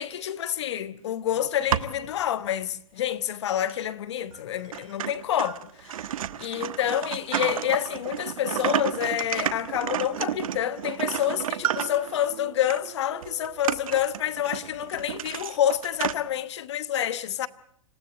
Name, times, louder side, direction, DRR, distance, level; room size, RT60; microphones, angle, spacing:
voice 1, 0.0-6.1 6.4-17.5, left 11 dB, 55° left, 1.1 m, -28 dB
sound 1, 1.4-2.1 2.7-2.8 3.7-3.8 4.3-4.4 4.7-12.3 12.7-12.9 13.2-16.2, right 10 dB, 85° right, 1.3 m, -31 dB
sound 2, 10.2-14.6, right 15 dB, 40° right, 1.1 m, -47 dB
26.5 x 16.5 x 8.3 m
supercardioid pair, 175°, 17 cm